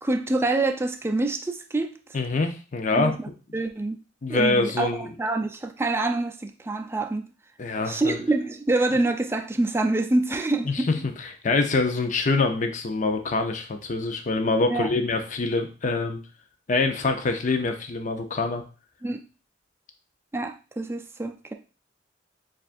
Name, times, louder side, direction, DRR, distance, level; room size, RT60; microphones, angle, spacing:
voice 1, 0.0-1.9 2.9-3.1 3.5-4.0 4.3-4.9 5.2-7.3 7.9-11.1 14.7-14.9 19.0-19.2 20.3-21.5, right 2 dB, 15° right, 0.4 m, -26 dB
voice 2, 2.1-3.1 4.2-5.1 7.6-8.2 10.7-10.8 11.2-16.2 16.7-18.6, left 3 dB, 45° left, 0.6 m, -25 dB
7.0 x 2.5 x 2.5 m
head